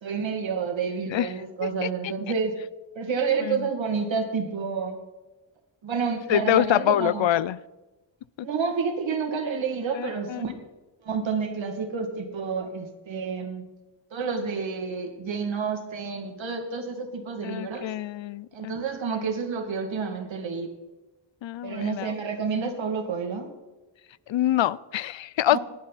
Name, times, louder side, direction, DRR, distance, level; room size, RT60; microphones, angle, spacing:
voice 1, 0.0-2.5 3.0-5.0 5.8-7.3 8.4-10.5 11.0-13.6 14.1-17.9 18.5-20.7 21.6-23.5 25.5-25.6, right 5 dB, 90° right, 2.5 m, -29 dB
voice 2, 6.3-7.6 8.4-8.5 9.9-10.4 17.4-18.7 21.4-22.1 24.3-25.6, left 12 dB, 80° left, 0.6 m, -25 dB
19.0 x 11.5 x 4.2 m
wide cardioid pair, 115°, 44 cm